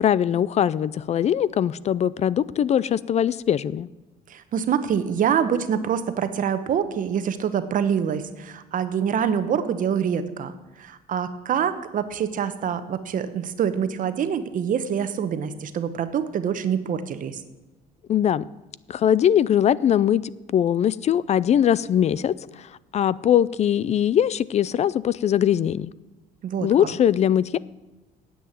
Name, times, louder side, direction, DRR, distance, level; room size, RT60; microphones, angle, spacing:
voice 1, 0.0-3.9 18.1-18.4 18.9-20.2 20.5-25.9 26.6-27.6, left 9 dB, 40° left, 20 dB, 0.4 m, -21 dB
voice 2, 4.3-10.5 10.8-17.4 26.4-26.9, right 8 dB, 50° right, 11 dB, 0.9 m, -25 dB
9.4 x 7.9 x 8.9 m, 1.1 s
cardioid pair, 110°, 17 cm